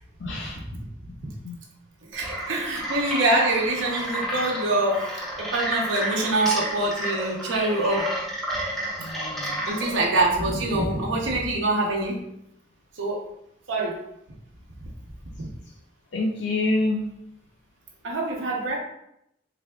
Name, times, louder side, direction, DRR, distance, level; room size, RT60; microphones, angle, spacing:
voice 1, 0.2-0.6 1.4-1.6 9.0-9.6 16.1-17.0, left 2 dB, 70° left, -1 dB, 0.4 m, -27 dB
sound 1, 2.1-10.1, right 1 dB, ahead, 0.8 m, -31 dB
voice 2, 2.1-5.1 5.4-8.1 9.7-12.2 13.0-13.2 13.7-14.0 15.4-15.5 18.0-18.8, right 2 dB, 85° right, -2 dB, 0.7 m, -25 dB
3.5 x 3.3 x 2.3 m, 0.78 s
head